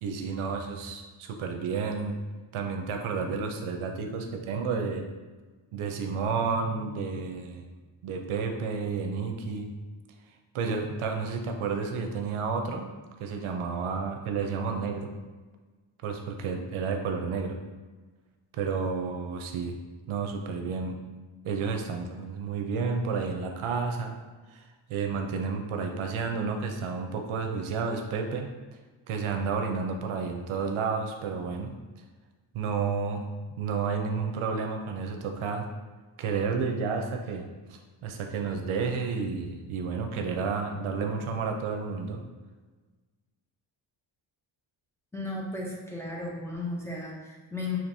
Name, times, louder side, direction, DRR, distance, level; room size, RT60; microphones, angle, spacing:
voice 1, 0.0-2.2 2.5-5.1 5.7-7.7 8.0-9.7 10.5-12.9 13.2-15.1 16.0-17.6 18.5-19.8 20.1-21.0 21.4-24.2 24.5-24.6 24.9-28.5 29.1-31.7 32.5-33.3 33.6-35.7 36.2-42.2, right 5 dB, 80° right, 4 dB, 0.7 m, -31 dB
voice 2, 45.1-47.8, left 2 dB, 5° left, -4 dB, 0.6 m, -35 dB
5.1 x 2.9 x 2.6 m, 1.3 s
cardioid pair, 125°, 48 cm